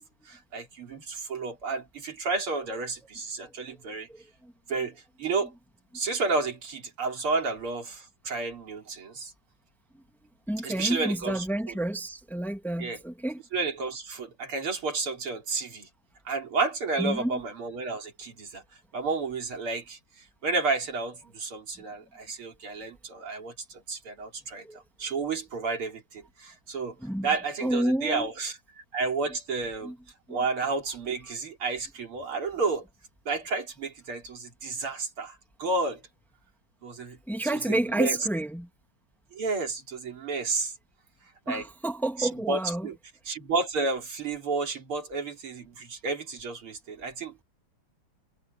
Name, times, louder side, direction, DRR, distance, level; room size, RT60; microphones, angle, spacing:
voice 1, 0.3-4.1 4.7-5.5 5.9-9.3 10.6-11.4 12.8-13.0 13.5-15.9 16.3-18.6 18.9-24.7 25.0-27.0 27.2-28.6 28.9-29.9 30.3-32.8 33.3-36.0 36.8-37.2 37.7-38.2 39.3-40.7 41.5-41.6 42.2-42.9 43.3-47.4, right 3 dB, 80° right, 4.4 m, -31 dB
voice 2, 4.1-4.5 10.5-13.4 17.0-17.4 24.6-24.8 27.0-27.3 27.6-28.3 29.8-30.0 30.3-30.4 37.3-38.7 41.5-42.9, right 1 dB, ahead, 2.2 m, -29 dB
omnidirectional pair, 2.4 m